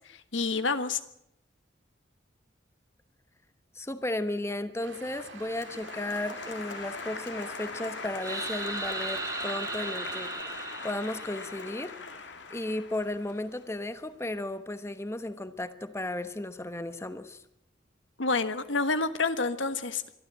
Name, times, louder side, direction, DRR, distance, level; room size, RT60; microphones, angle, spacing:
voice 1, 0.3-1.0 18.2-20.0, left 4 dB, 90° left, 11 dB, 1.4 m, -28 dB
voice 2, 3.7-11.9 12.5-17.4, left 1 dB, 15° left, 11 dB, 1.0 m, -34 dB
sound 1, 4.8-10.4, right 5 dB, 85° right, 1.9 m, -48 dB
Applause, 5.1-14.2, left 4 dB, 70° left, 2.0 m, -41 dB
sound 2, 8.2-12.0, right 3 dB, 20° right, 2.3 m, -37 dB
24.0 x 13.0 x 8.8 m, 0.78 s
head